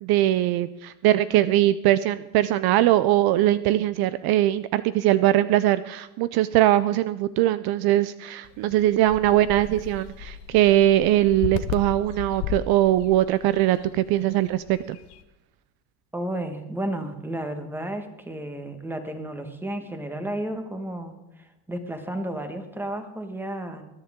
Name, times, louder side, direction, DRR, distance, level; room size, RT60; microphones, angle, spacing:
voice 1, 0.0-15.0, right 14 dB, 60° right, 14 dB, 0.5 m, -21 dB
sound 1, 8.4-15.2, left 10 dB, 70° left, 1.1 m, -36 dB
voice 2, 16.1-23.8, right 1 dB, 5° right, 7 dB, 1.4 m, -32 dB
21.0 x 10.5 x 3.7 m, 0.99 s
cardioid pair, 125°, 43 cm